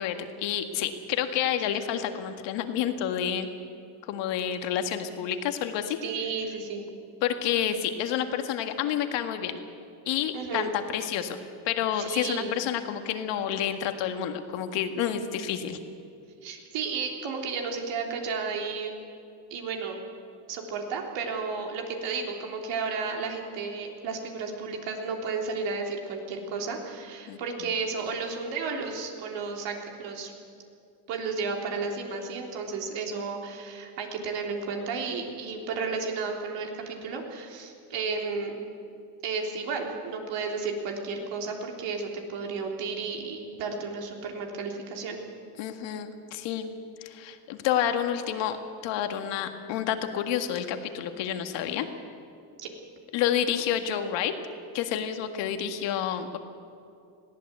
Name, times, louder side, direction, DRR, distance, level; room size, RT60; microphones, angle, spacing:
voice 1, 0.0-3.5 4.0-6.0 7.2-9.6 10.1-15.8 27.3-27.4 45.6-46.7 47.0-48.6 48.8-51.9 53.1-54.3 54.7-56.4, left 9 dB, 75° left, 7 dB, 1.9 m, -29 dB
voice 2, 6.0-6.9 10.3-10.7 12.0-12.5 16.4-18.9 19.5-20.0 20.5-30.3 31.1-38.6 39.2-45.2 52.6-52.7, right 4 dB, 75° right, 2 dB, 3.5 m, -33 dB
21.5 x 15.5 x 8.2 m, 2.5 s
cardioid pair, 125°, 44 cm